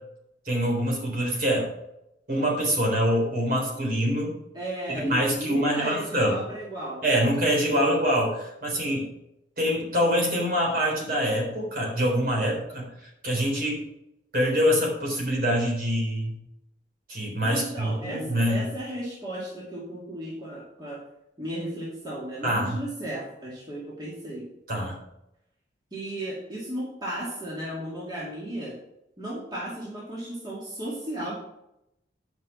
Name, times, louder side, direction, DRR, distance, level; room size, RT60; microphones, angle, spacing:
voice 1, 0.5-1.7 2.3-4.3 4.9-6.4 7.0-9.1 9.6-12.9 13.2-13.8 14.3-16.4 17.1-18.6 22.4-22.8 24.7-25.0, equal, 50° right, -1 dB, 3.8 m, -25 dB
voice 2, 4.5-7.2 17.5-21.0 21.4-24.4 25.9-28.7 29.2-31.4, right 1 dB, 20° right, -6 dB, 2.4 m, -35 dB
10.5 x 5.9 x 6.0 m, 0.85 s
head